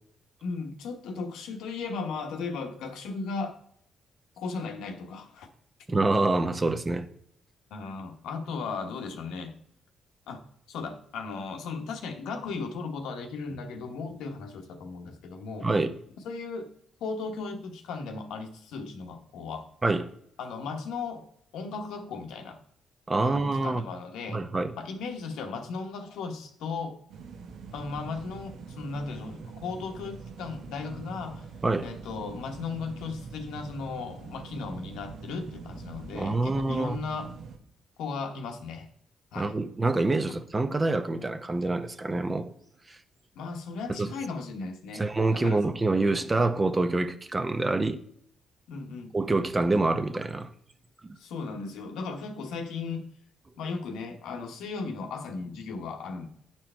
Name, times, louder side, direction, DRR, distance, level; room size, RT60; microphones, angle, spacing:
voice 1, 0.4-3.6 4.4-5.5 7.7-9.6 10.3-15.7 16.2-16.7 17.0-19.7 20.4-21.3 21.5-22.6 23.2-24.4 24.8-27.0 27.7-31.5 31.8-37.3 38.0-38.9 39.3-39.6 43.3-45.7 48.7-49.2 51.2-53.1 53.5-56.3, left 4 dB, 85° left, 1.1 m, -36 dB
voice 2, 5.9-7.1 15.6-15.9 19.8-20.1 23.1-23.8 24.3-24.7 31.6-31.9 36.1-37.0 39.3-42.5 42.9-43.0 43.9-44.1 44.9-48.0 49.1-50.5 51.0-51.2, right 2 dB, 25° right, 0.7 m, -26 dB
sound 1, 27.1-37.6, right 5 dB, 70° right, 1.0 m, -44 dB
9.3 x 4.5 x 4.4 m
cardioid pair, 90°, 0 cm